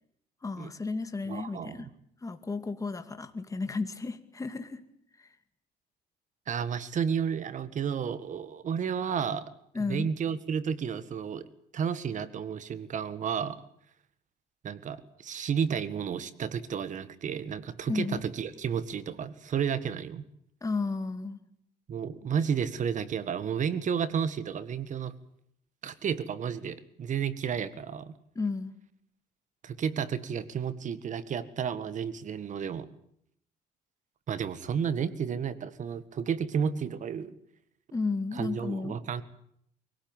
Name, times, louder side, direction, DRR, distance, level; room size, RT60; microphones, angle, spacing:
voice 1, 0.4-1.9 2.2-4.8 5.2-5.3 9.7-10.1 17.9-18.2 20.6-21.4 28.3-28.8 37.9-39.0, left 3 dB, 20° left, 8 dB, 2.3 m, -33 dB
voice 2, 1.3-1.9 6.5-9.4 9.9-11.5 11.7-13.6 14.6-20.2 21.9-25.1 25.8-28.1 29.6-32.9 34.3-37.3 38.3-39.2, right 7 dB, 45° right, 14 dB, 1.8 m, -32 dB
23.5 x 17.5 x 9.1 m, 0.71 s
cardioid pair, 110°, 17 cm